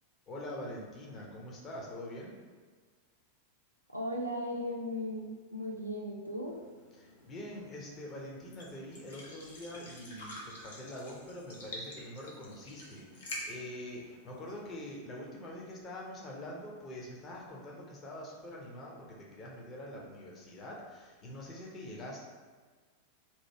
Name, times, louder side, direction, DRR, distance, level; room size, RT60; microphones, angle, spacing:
voice 1, 0.3-2.4 7.0-22.3, left 1 dB, 25° left, -2 dB, 0.8 m, -44 dB
voice 2, 3.9-6.5, left 1 dB, 90° left, -1 dB, 0.4 m, -37 dB
sound 1, 6.4-15.0, left 1 dB, 65° left, 0.8 m, -48 dB
3.0 x 2.6 x 4.3 m, 1.5 s
figure-of-eight pair, 90°, 0 cm